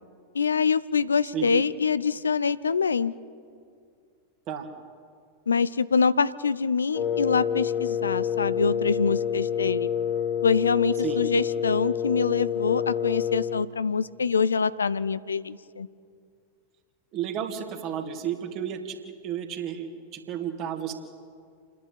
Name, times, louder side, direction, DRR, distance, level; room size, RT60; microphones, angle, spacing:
voice 1, 0.3-3.1 5.5-9.9 10.4-15.9, left 5 dB, 75° left, 17 dB, 0.5 m, -25 dB
Wind instrument woodwind instrument, 6.9-13.7, left 8 dB, 40° left, 1.4 m, -28 dB
voice 2, 17.1-20.9, right 9 dB, 40° right, 5 dB, 2.4 m, -32 dB
29.0 x 11.0 x 8.9 m, 2.2 s
figure-of-eight pair, 90°, 0 cm